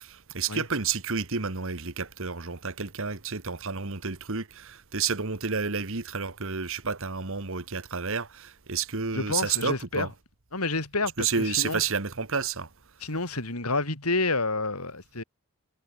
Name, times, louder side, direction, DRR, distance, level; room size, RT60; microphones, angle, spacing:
voice 1, 0.0-10.1 11.2-12.7, right 5 dB, 60° right, 1.7 m, -30 dB
voice 2, 9.1-10.1 10.5-11.8 13.0-15.2, left 3 dB, 80° left, 5.2 m, -29 dB
head